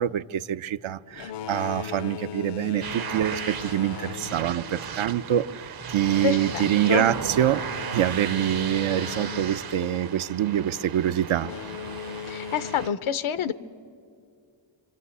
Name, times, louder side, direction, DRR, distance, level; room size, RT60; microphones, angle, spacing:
voice 1, 0.0-7.6 7.9-11.5, right 11 dB, 80° right, 0.7 m, -25 dB
Boat Water vehicle, 1.1-10.5 11.3-12.9, left 8 dB, 60° left, 0.6 m, -39 dB
sound 1, 2.8-12.9, right 7 dB, 50° right, 0.7 m, -36 dB
voice 2, 6.2-7.1 12.3-13.5, left 8 dB, 85° left, 0.9 m, -27 dB
27.0 x 24.0 x 8.3 m
cardioid pair, 80°, 48 cm